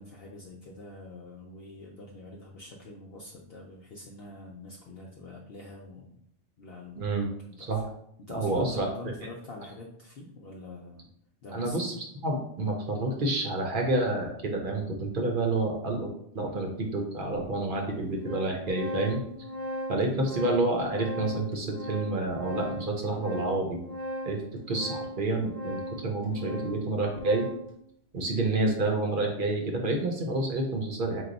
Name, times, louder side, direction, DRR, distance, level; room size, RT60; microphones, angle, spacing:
voice 1, 0.0-6.2 6.6-7.7 8.3-11.1 11.4-11.8, left 2 dB, 60° left, -2 dB, 0.7 m, -44 dB
voice 2, 6.9-7.3 7.6-7.9 8.3-8.9 11.5-12.0 12.2-16.1 16.3-19.2 19.9-23.8 24.2-24.4 24.7-27.5 28.1-31.2, right 2 dB, 50° right, 1 dB, 0.8 m, -29 dB
Organ, 16.5-16.6 17.4-17.5 17.8-27.7, equal, 85° right, 1.3 m, -38 dB
4.7 x 2.2 x 3.9 m, 0.70 s
omnidirectional pair, 1.2 m